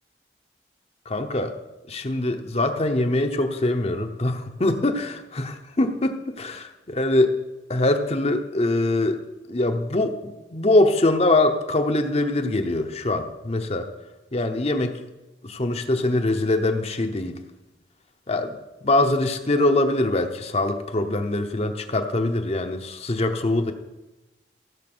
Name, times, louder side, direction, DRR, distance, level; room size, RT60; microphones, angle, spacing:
voice 1, 1.1-1.5 1.9-6.7 6.9-7.3 7.7-9.2 9.5-13.9 14.3-15.0 15.4-17.4 18.3-23.7, left 2 dB, 35° left, 6 dB, 0.8 m, -23 dB
15.5 x 5.8 x 6.1 m, 1.0 s
head